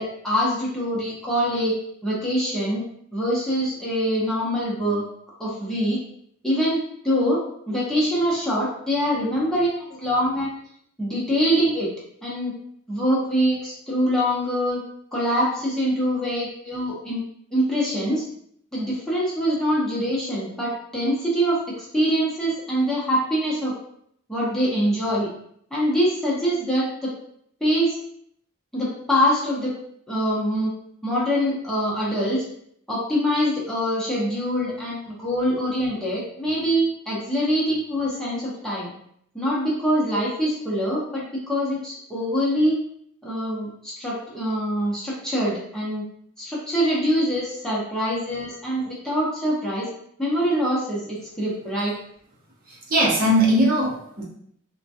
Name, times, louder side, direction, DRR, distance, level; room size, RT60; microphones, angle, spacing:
voice 1, 0.0-1.7 2.0-2.8 3.1-5.0 5.4-6.0 6.4-7.4 7.7-10.5 11.0-11.9 12.2-12.5 12.9-14.8 15.1-17.2 17.5-18.2 18.7-23.7 24.3-25.3 25.7-27.1 27.6-28.0 28.7-29.7 30.1-30.7 31.0-32.4 32.9-38.9 39.3-42.8 43.2-46.1 46.4-49.9 50.2-51.9, equal, 5° left, -7 dB, 0.8 m, -24 dB
voice 2, 52.7-54.2, equal, 45° right, -4 dB, 0.8 m, -20 dB
3.6 x 2.2 x 2.7 m, 0.68 s
head